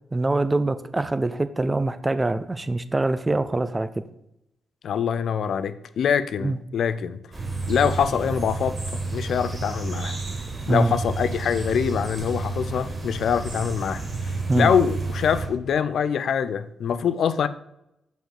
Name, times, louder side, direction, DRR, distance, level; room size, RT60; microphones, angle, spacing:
voice 1, 0.1-4.0 6.4-6.6 10.6-10.9 14.5-14.7, right 2 dB, 25° right, 0.5 m, -24 dB
voice 2, 4.8-7.2 7.7-8.8 9.0-10.2 10.7-17.5, left 7 dB, 70° left, 0.3 m, -24 dB
sound 1, 7.3-15.5, right 3 dB, 40° right, 2.3 m, -31 dB
5.3 x 4.4 x 4.7 m
hypercardioid pair, 45°, 0 cm